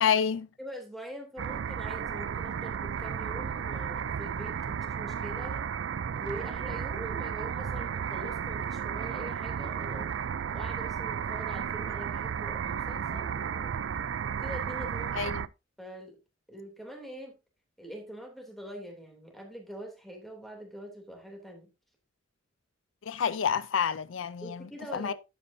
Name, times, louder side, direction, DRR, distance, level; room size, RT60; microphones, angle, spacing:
voice 1, 0.0-0.5 15.2-15.4 23.1-25.1, left 7 dB, 70° left, 0.4 m, -28 dB
voice 2, 0.6-5.7 6.1-10.1 10.5-13.7 14.4-15.3 15.8-16.2 16.5-17.3 17.8-21.7 24.4-25.1, equal, ahead, 2.9 m, -44 dB
sound 1, 1.4-15.5, right 7 dB, 65° right, 0.4 m, -33 dB
11.0 x 8.5 x 2.7 m
head